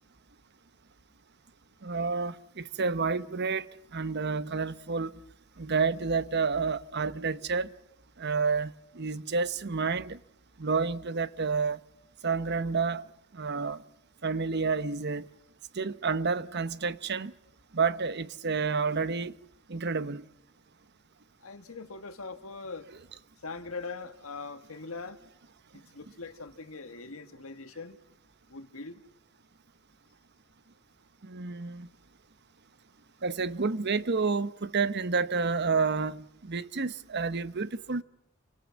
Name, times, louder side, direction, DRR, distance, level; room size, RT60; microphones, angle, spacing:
voice 1, 1.8-5.1 5.6-7.7 8.2-10.2 10.6-11.8 12.2-13.1 13.3-13.8 14.2-15.3 15.7-17.3 17.7-19.4 19.7-20.2 31.2-31.9 33.2-38.0, right 4 dB, 55° right, 1.0 m, -29 dB
voice 2, 21.4-22.9 23.4-25.2 25.7-28.0 28.5-29.0, left 4 dB, 85° left, 1.7 m, -41 dB
29.5 x 23.5 x 7.4 m
head